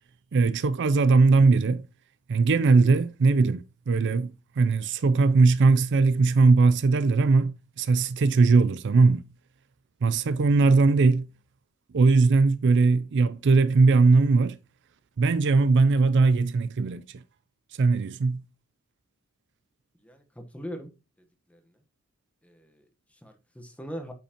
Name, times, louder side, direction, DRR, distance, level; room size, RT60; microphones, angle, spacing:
voice 1, 0.3-1.8 2.3-9.2 10.0-11.2 11.9-14.6 15.2-17.0 17.8-18.4, right 3 dB, 55° right, 0.4 m, -20 dB
voice 2, 20.0-20.9 21.5-21.8 22.4-24.1, equal, 5° left, 1.1 m, -41 dB
8.7 x 5.6 x 2.9 m
head